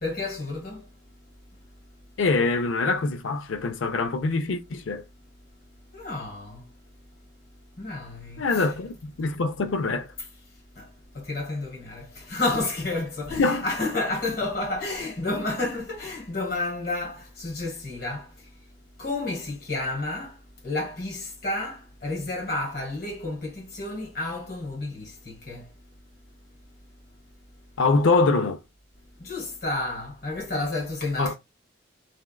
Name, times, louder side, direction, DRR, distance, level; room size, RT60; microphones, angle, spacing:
voice 1, 0.0-0.8 5.9-6.7 7.8-8.4 10.7-10.9 11.1-18.3 19.0-20.3 20.6-25.6 29.2-31.3, left 2 dB, 50° left, 1.6 m, -30 dB
voice 2, 2.2-5.0 8.4-10.1 13.4-13.7 27.8-28.6 31.2-31.3, left 3 dB, 80° left, 0.5 m, -24 dB
3.4 x 2.4 x 2.2 m
head